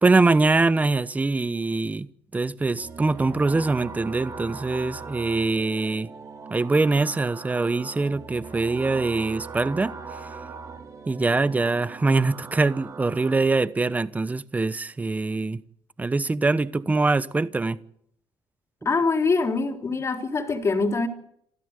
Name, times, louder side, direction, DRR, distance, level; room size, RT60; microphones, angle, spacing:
voice 1, 0.0-6.1 6.5-10.0 11.1-15.6 16.0-17.8, right 3 dB, 15° right, 1.0 m, -23 dB
sound 1, 2.8-13.4, right 5 dB, 35° right, 4.7 m, -40 dB
voice 2, 18.9-21.1, left 4 dB, 30° left, 3.6 m, -24 dB
27.5 x 14.0 x 8.3 m
cardioid pair, 110°, 9 cm